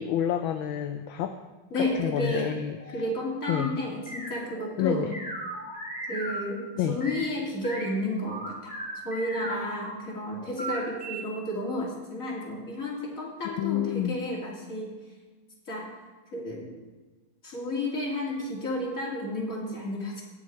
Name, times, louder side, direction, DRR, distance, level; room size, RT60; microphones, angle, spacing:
voice 1, 0.0-1.4 1.8-2.7 3.5-3.8 4.8-5.1 6.8-7.0 13.4-14.2, left 10 dB, 75° left, 7 dB, 1.4 m, -28 dB
voice 2, 1.7-2.5 2.9-5.1 6.1-8.7 9.0-14.9 15.7-15.9 16.3-16.7 17.4-20.2, left 1 dB, 40° left, -3 dB, 3.0 m, -32 dB
sound 1, 1.9-6.4 6.8-7.2 7.6-7.9 8.3-10.0 10.4-11.2, right 1 dB, 5° left, 3.9 m, -38 dB
18.0 x 6.4 x 4.6 m, 1.3 s
omnidirectional pair, 2.4 m